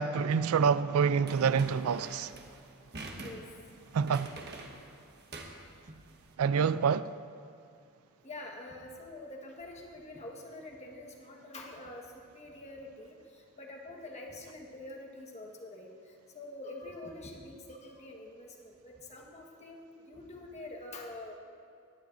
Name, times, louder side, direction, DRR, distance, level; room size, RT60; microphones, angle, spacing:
voice 1, 0.0-2.3 3.9-4.3 6.4-7.1, right 6 dB, 90° right, 0.4 m, -27 dB
sound 1, 1.3-6.3, right 2 dB, 50° right, 1.3 m, -47 dB
voice 2, 8.2-21.4, left 2 dB, 30° left, 1.4 m, -46 dB
21.0 x 10.5 x 2.6 m
head